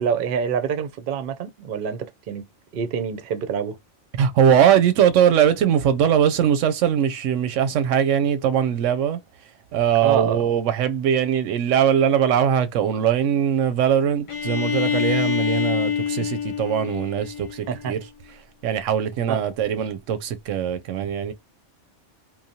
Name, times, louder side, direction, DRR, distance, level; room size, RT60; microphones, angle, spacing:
voice 1, 0.0-2.5 2.7-3.8 10.0-10.5 16.2-16.3 17.7-17.9 19.3-19.4, right 7 dB, 55° right, 0.6 m, -26 dB
voice 2, 4.2-9.2 9.7-18.0 18.6-21.3, right 9 dB, 90° right, 0.9 m, -21 dB
Bowed string instrument, 14.3-18.0, left 7 dB, 55° left, 0.3 m, -26 dB
3.1 x 2.0 x 2.7 m
omnidirectional pair, 1.3 m